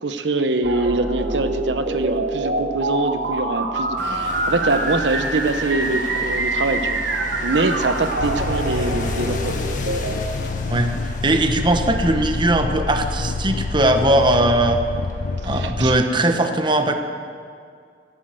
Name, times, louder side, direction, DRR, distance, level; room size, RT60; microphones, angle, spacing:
voice 1, 0.0-7.0 7.4-9.6 15.5-15.9, right 2 dB, 90° right, 9 dB, 0.9 m, -24 dB
sound 1, 0.6-10.1, right 2 dB, 70° right, 1.6 m, -25 dB
sound 2, 4.0-15.4, left 2 dB, 45° left, 1.7 m, -37 dB
sound 3, 8.2-16.0, left 3 dB, 65° left, 0.5 m, -27 dB
voice 2, 11.2-14.8 15.4-16.9, right 1 dB, 25° right, 6 dB, 1.1 m, -19 dB
17.0 x 11.0 x 7.7 m, 2.2 s
head